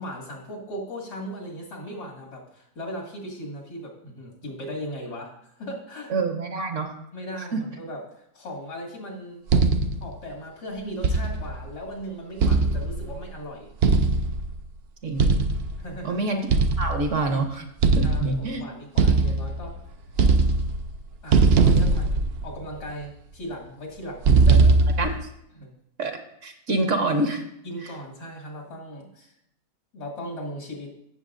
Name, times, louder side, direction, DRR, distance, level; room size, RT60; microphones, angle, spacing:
voice 1, 0.0-6.1 7.1-9.4 10.0-13.7 15.8-16.2 18.0-19.8 21.2-22.2 22.4-25.1 25.5-25.7 27.6-29.3 29.9-31.0, equal, 85° left, -2 dB, 2.8 m, -37 dB
voice 2, 6.1-7.0 15.0-15.4 16.0-16.5 16.8-17.6 18.0-18.6 25.0-25.1 26.0-27.4 27.8-27.9, right 2 dB, 55° right, 5 dB, 1.1 m, -26 dB
sound 1, 9.5-10.1 11.0-11.6 12.4-13.2 13.8-14.6 15.2-15.8 16.5-17.3 17.8-18.5 19.0-19.8 20.1-21.0 21.3-22.8 24.2-25.2, right 3 dB, 85° right, 0.5 m, -20 dB
15.5 x 6.8 x 2.5 m, 0.77 s
omnidirectional pair, 1.7 m